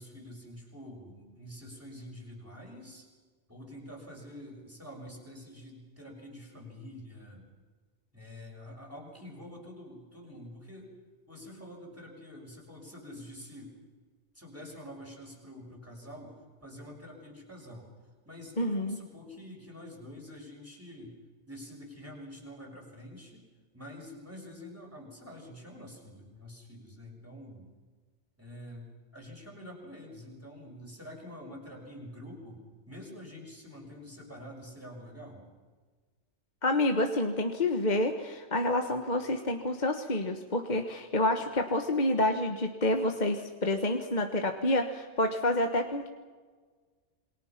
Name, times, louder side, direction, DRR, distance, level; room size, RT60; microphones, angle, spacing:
voice 1, 0.0-3.1 3.5-7.5 8.1-10.9 11.3-13.8 14.3-17.9 18.2-21.1 21.4-23.4 23.7-27.7 28.4-35.5, left 1 dB, 10° right, -1 dB, 6.2 m, -47 dB
voice 2, 18.6-19.0 36.6-46.1, left 1 dB, 40° left, 5 dB, 1.5 m, -28 dB
28.0 x 22.5 x 6.0 m, 1.5 s
omnidirectional pair, 1.2 m